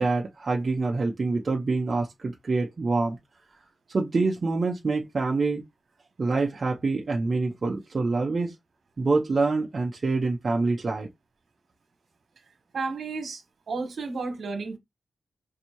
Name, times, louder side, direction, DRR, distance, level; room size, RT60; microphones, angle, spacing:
voice 1, 0.0-3.2 3.9-5.6 6.2-8.5 9.0-11.1, right 3 dB, 40° right, 0.6 m, -26 dB
voice 2, 12.7-13.4 13.7-14.8, right 4 dB, 65° right, 1.3 m, -32 dB
5.7 x 2.7 x 2.9 m
wide cardioid pair, 175°, 0 cm